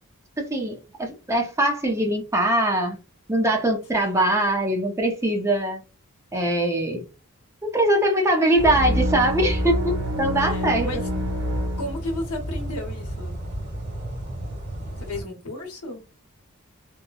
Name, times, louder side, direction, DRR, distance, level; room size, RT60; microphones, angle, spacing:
voice 1, 0.4-3.0 3.3-5.8 6.3-7.0 7.6-10.9, right 1 dB, 15° right, 0.5 m, -22 dB
sound 1, 8.6-15.2, right 1 dB, 35° right, 1.6 m, -33 dB
sound 2, 8.6-12.4, equal, 85° right, 1.0 m, -27 dB
voice 2, 10.3-11.1 11.8-13.4 15.0-16.0, left 1 dB, 75° left, 0.9 m, -34 dB
2.9 x 2.1 x 2.3 m
head